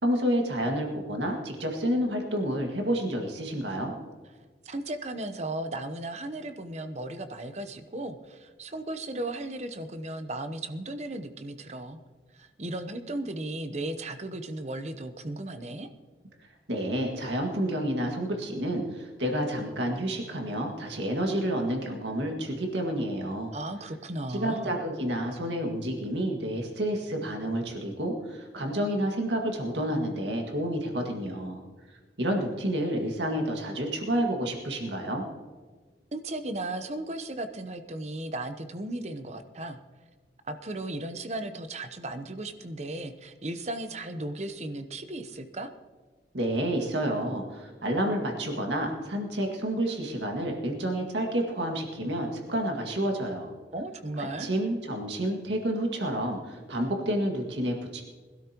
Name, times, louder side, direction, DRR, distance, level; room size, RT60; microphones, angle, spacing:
voice 1, 0.0-3.9 16.7-23.5 24.3-31.6 32.2-35.3 46.3-53.5 54.4-58.0, right 1 dB, 85° right, 1 dB, 2.0 m, -29 dB
voice 2, 4.6-12.0 12.3-15.9 23.5-24.7 36.1-39.8 40.4-45.7 53.7-54.5, right 1 dB, 40° right, 9 dB, 0.8 m, -36 dB
21.0 x 12.5 x 3.0 m, 1.4 s
head